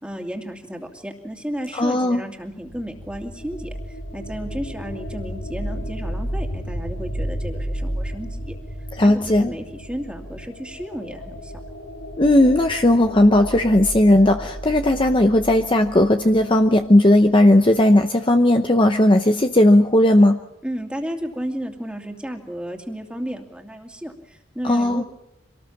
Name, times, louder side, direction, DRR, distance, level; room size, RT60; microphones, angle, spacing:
voice 1, 0.0-8.6 9.0-11.5 20.6-25.0, equal, 5° right, 3 dB, 2.6 m, -33 dB
voice 2, 1.7-2.2 9.0-9.5 12.2-20.4 24.6-25.0, left 1 dB, 25° left, 6 dB, 0.8 m, -16 dB
sound 1, 2.4-17.2, equal, 85° left, 4.8 m, -33 dB
25.5 x 19.0 x 7.3 m, 0.84 s
head